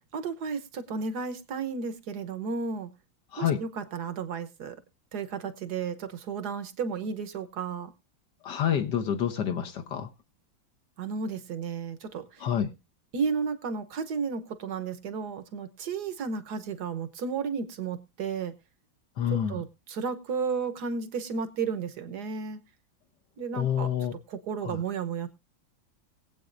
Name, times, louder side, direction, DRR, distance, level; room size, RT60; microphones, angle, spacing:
voice 1, 0.1-2.9 3.4-4.7 5.1-7.9 11.0-12.2 13.1-18.5 19.5-22.6 23.4-23.9 24.3-25.3, right 5 dB, 60° right, 11 dB, 1.5 m, -33 dB
voice 2, 8.4-10.1 12.4-12.7 19.2-19.6 23.5-24.1 24.6-24.8, left 9 dB, 65° left, 5 dB, 1.6 m, -28 dB
20.5 x 8.1 x 2.5 m, 0.26 s
omnidirectional pair, 2.1 m